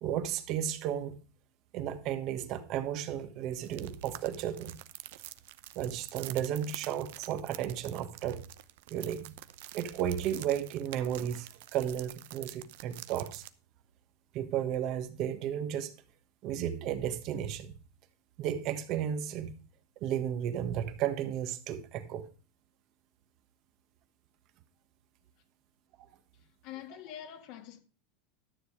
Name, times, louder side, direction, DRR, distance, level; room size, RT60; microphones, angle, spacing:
voice 1, 0.0-1.2 1.7-4.8 5.7-8.4 8.9-9.3 9.7-13.5 14.3-15.9 16.4-17.8 18.4-19.5 20.0-22.3, right 10 dB, 50° right, 1.5 m, -33 dB
sound 1, 3.6-13.5, right 16 dB, 75° right, 0.8 m, -47 dB
voice 2, 26.3-27.8, left 11 dB, 55° left, 1.9 m, -46 dB
12.5 x 7.1 x 4.8 m
supercardioid pair, 130°, 0 cm